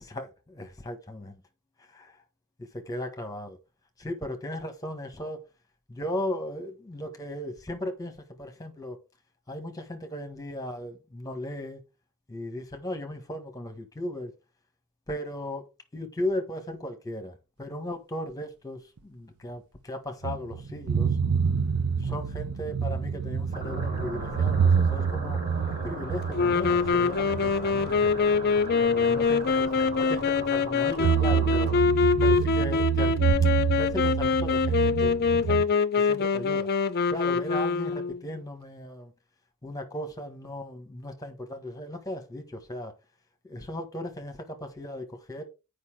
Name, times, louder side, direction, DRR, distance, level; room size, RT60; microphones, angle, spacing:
voice 1, 0.0-1.4 1.9-2.2 2.6-3.6 4.0-5.4 5.9-9.0 9.5-11.8 12.3-14.3 15.1-21.2 22.0-25.4 25.7-28.1 28.8-31.7 32.2-33.2 33.7-35.6 36.0-36.7 37.1-39.1 39.6-42.9 43.4-45.4, left 1 dB, 15° left, 1.4 m, -36 dB
sound 1, 20.2-28.8 29.2-29.3 31.0-35.6, right 7 dB, 85° right, 0.6 m, -27 dB
sound 2, 23.5-31.8, equal, 25° right, 5.8 m, -38 dB
sound 3, 26.3-38.2, left 5 dB, 45° left, 0.5 m, -24 dB
8.2 x 5.2 x 4.8 m
head